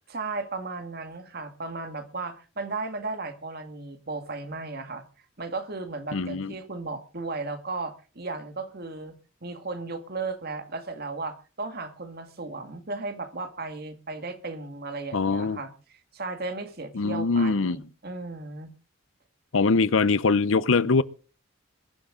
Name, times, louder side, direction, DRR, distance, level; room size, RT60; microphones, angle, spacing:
voice 1, 0.1-5.0 5.4-18.8, right 3 dB, 50° right, 2.0 m, -35 dB
voice 2, 6.1-6.5 15.1-15.6 17.0-17.8 19.5-21.0, left 4 dB, 75° left, 0.7 m, -22 dB
22.0 x 11.5 x 3.8 m
head